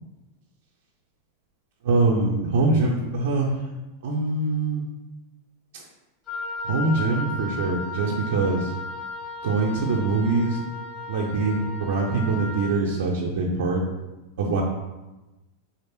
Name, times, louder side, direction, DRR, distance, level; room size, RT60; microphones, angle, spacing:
voice 1, 1.8-3.5 4.0-4.8 6.6-8.7 9.4-10.6 11.1-13.8 14.4-14.6, right 3 dB, 55° right, -2 dB, 0.5 m, -23 dB
Wind instrument woodwind instrument, 6.3-12.8, left 3 dB, 25° left, 1.0 m, -35 dB
4.3 x 3.2 x 2.9 m, 1.1 s
figure-of-eight pair, 90°, 0 cm